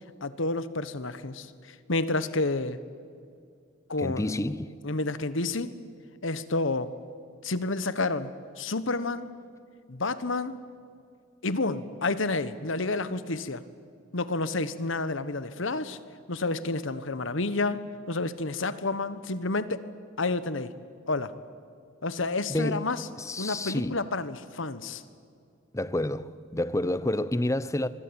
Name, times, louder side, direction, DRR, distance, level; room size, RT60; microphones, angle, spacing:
voice 1, 0.2-2.8 3.9-4.3 4.8-5.7 6.2-6.9 7.4-8.3 8.6-9.3 9.9-10.6 11.4-13.6 14.1-16.0 16.3-19.8 20.2-20.7 21.1-21.4 22.0-23.1 23.4-25.0, left 3 dB, 70° left, 1.3 m, -30 dB
voice 2, 4.0-4.7 22.5-24.0 25.7-27.9, left 1 dB, 15° left, 0.7 m, -29 dB
24.5 x 23.5 x 8.9 m
head